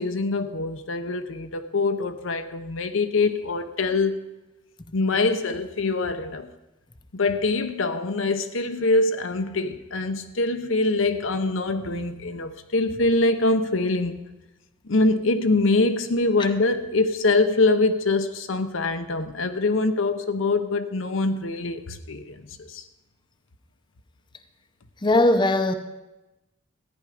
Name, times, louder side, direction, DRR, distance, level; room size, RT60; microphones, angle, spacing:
voice 1, 0.0-4.2 4.9-6.5 7.1-14.2 14.8-22.8, left 3 dB, 75° left, 0.8 m, -24 dB
voice 2, 25.0-25.7, left 2 dB, 25° left, 0.7 m, -19 dB
14.0 x 9.7 x 5.0 m
head